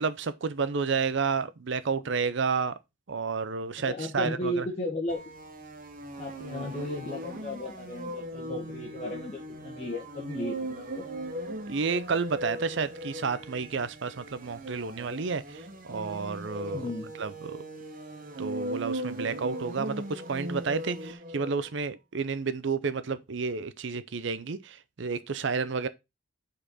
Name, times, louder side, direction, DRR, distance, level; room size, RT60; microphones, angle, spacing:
voice 1, 0.0-2.7 3.1-4.7 11.7-16.9 17.2-17.6 18.4-25.9, right 5 dB, 60° right, 0.5 m, -31 dB
voice 2, 3.9-5.2 6.2-11.1 16.7-17.1, left 1 dB, 30° left, 1.2 m, -35 dB
sound 1, 5.1-21.7, right 1 dB, 40° right, 1.0 m, -39 dB
5.4 x 4.3 x 5.5 m
head